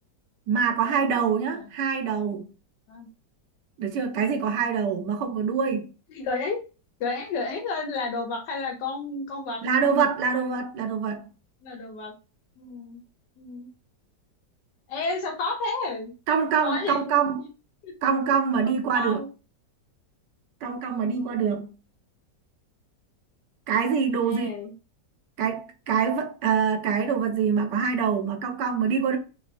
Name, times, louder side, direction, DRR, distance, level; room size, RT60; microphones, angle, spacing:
voice 1, 0.5-2.5 3.8-5.9 9.6-11.3 16.3-17.4 18.0-19.2 20.6-21.7 23.7-24.5 25.4-29.2, right 6 dB, 80° right, 1.3 m, -25 dB
voice 2, 4.5-4.9 6.1-6.6 7.0-9.6 11.6-12.1 12.6-13.0 13.4-13.7 14.9-16.1 16.6-17.2 17.8-17.9 18.9-19.3 20.6-21.6 24.3-24.7, left 3 dB, 80° left, 1.4 m, -32 dB
3.3 x 2.7 x 2.5 m
omnidirectional pair, 1.9 m